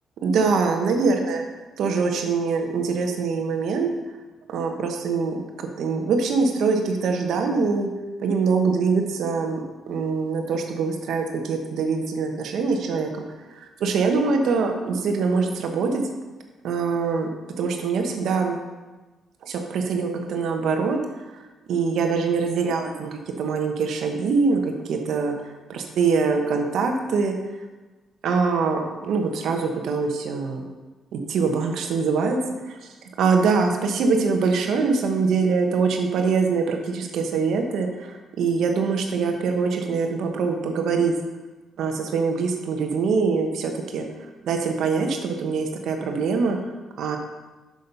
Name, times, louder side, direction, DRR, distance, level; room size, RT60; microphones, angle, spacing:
voice 1, 0.2-1.4 1.8-3.9 4.5-7.9 8.2-13.1 13.6-16.0 16.6-17.3 17.6-18.6 19.4-21.0 21.7-25.3 25.7-27.3 28.2-30.7 31.1-32.4 32.7-32.8 33.2-33.7 33.9-41.1 41.8-44.1 44.4-46.6 47.0-47.2, right 4 dB, 75° right, 4 dB, 1.2 m, -23 dB
6.8 x 6.5 x 5.5 m, 1.2 s
cardioid pair, 90°, 0 cm